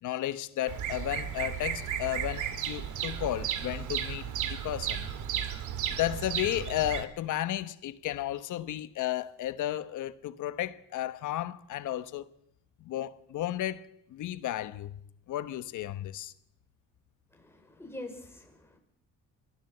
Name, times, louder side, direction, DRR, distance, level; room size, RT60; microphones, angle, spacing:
voice 1, 0.0-5.1 5.9-12.3 12.8-15.0 15.3-16.3, left 13 dB, 80° left, 1.2 m, -33 dB
Bird vocalization bird call bird song, 0.7-7.0, right 9 dB, 80° right, 2.1 m, -34 dB
voice 2, 17.3-18.8, left 1 dB, 10° left, 5.6 m, -45 dB
23.0 x 15.5 x 8.0 m
cardioid pair, 90°, 30 cm